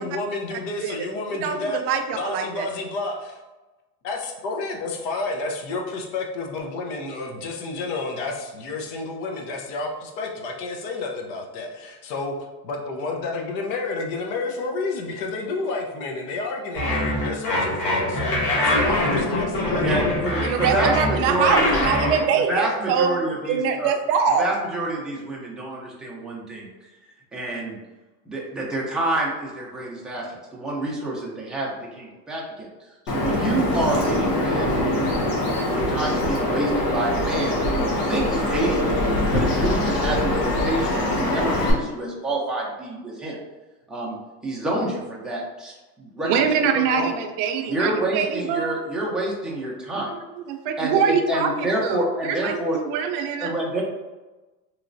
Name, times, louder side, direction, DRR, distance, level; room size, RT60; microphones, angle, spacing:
voice 1, 0.0-3.4 4.0-12.3 12.6-19.8, left 3 dB, 60° left, 2 dB, 0.8 m, -30 dB
voice 2, 1.4-2.7 20.4-23.1 23.5-24.5 46.2-48.8 50.5-53.5, right 6 dB, 55° right, 5 dB, 0.6 m, -24 dB
sound 1, 16.7-22.2, left 1 dB, 35° left, 1.2 m, -23 dB
voice 3, 19.8-21.8 22.5-23.9 24.4-26.7 27.3-27.8 28.3-32.7 33.1-43.4 43.9-44.2 44.4-47.1 47.7-50.1 50.8-52.8 53.4-53.8, right 1 dB, ahead, -5 dB, 0.5 m, -28 dB
Bird vocalization bird call bird song, 33.1-41.7, left 1 dB, 80° left, 1.2 m, -23 dB
3.1 x 3.0 x 2.6 m, 1.1 s
supercardioid pair, 120°, 49 cm